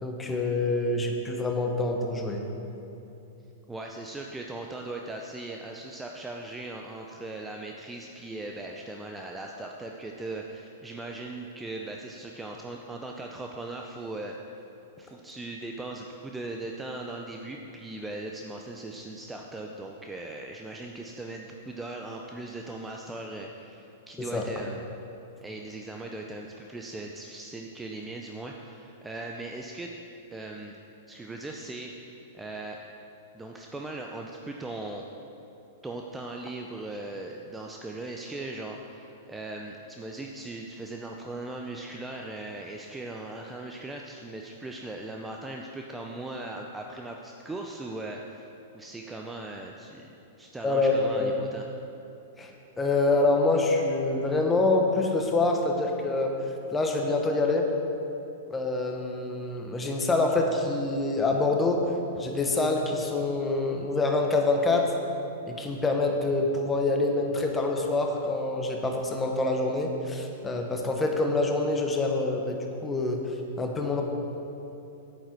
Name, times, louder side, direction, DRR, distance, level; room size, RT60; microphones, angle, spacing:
voice 1, 0.0-2.4 24.2-24.4 50.6-51.3 52.4-56.4 56.7-57.7 58.5-61.9 62.1-64.9 65.5-73.2 73.6-74.0, left 2 dB, 15° left, 2 dB, 1.2 m, -26 dB
voice 2, 3.7-14.4 15.0-24.8 25.4-29.9 30.3-30.8 31.1-32.8 33.3-35.1 35.8-48.5 48.7-51.7, right 2 dB, 10° right, 1 dB, 0.6 m, -39 dB
8.9 x 7.6 x 4.6 m, 2.8 s
hypercardioid pair, 110°, 0 cm